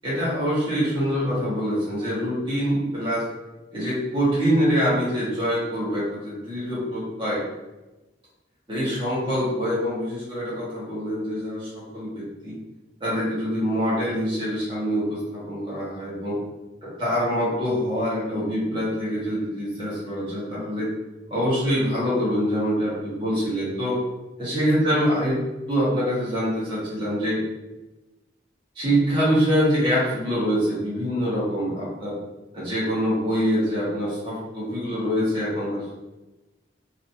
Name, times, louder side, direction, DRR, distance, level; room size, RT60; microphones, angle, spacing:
voice 1, 0.0-3.2 3.7-7.4 8.7-12.6 13.0-16.4 17.0-20.9 21.3-24.0 24.4-25.4 25.7-27.4 28.7-32.2 32.5-35.9, equal, 25° right, -9 dB, 1.5 m, -25 dB
3.2 x 2.9 x 2.7 m, 1.1 s
head